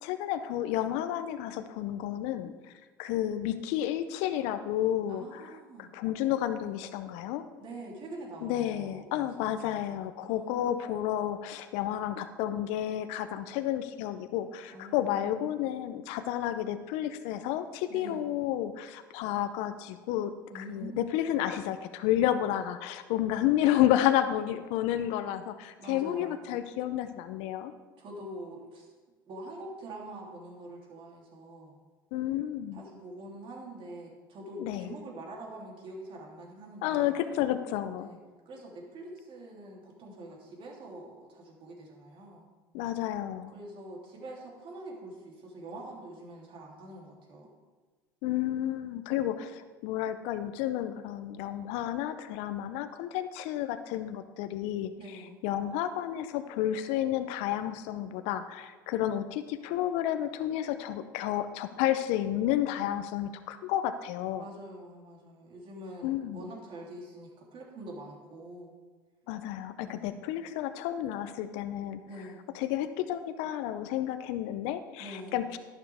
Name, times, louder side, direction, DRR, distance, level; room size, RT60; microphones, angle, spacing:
voice 1, 0.0-2.5 3.0-5.5 5.9-7.4 8.4-27.7 32.1-32.8 34.6-34.9 36.8-38.1 42.7-43.5 48.2-64.4 66.0-66.4 69.3-72.0 72.5-75.6, left 12 dB, 65° left, 10 dB, 0.7 m, -31 dB
voice 2, 5.1-5.9 7.6-10.8 14.7-15.5 17.9-18.2 20.5-21.3 25.8-26.4 28.0-28.9 29.3-31.8 32.7-37.2 37.9-38.2 38.4-42.4 43.5-47.5 55.0-55.4 62.8-63.0 64.4-68.7 69.8-70.2 72.1-72.4 75.0-75.4, right 1 dB, 50° right, -2 dB, 3.2 m, -45 dB
11.5 x 9.5 x 3.6 m, 1.3 s
hypercardioid pair, 80°, 12 cm